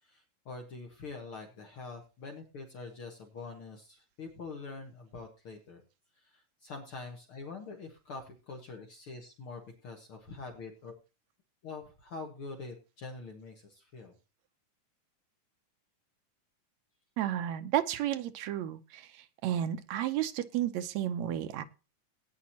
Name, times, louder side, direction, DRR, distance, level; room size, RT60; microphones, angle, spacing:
voice 1, 0.0-5.8 6.2-10.9 11.6-14.1, left 3 dB, 55° left, 3 dB, 2.1 m, -45 dB
voice 2, 17.2-19.0 19.4-21.6, right 11 dB, 75° right, 9 dB, 2.0 m, -32 dB
17.5 x 9.4 x 2.9 m, 0.31 s
omnidirectional pair, 3.4 m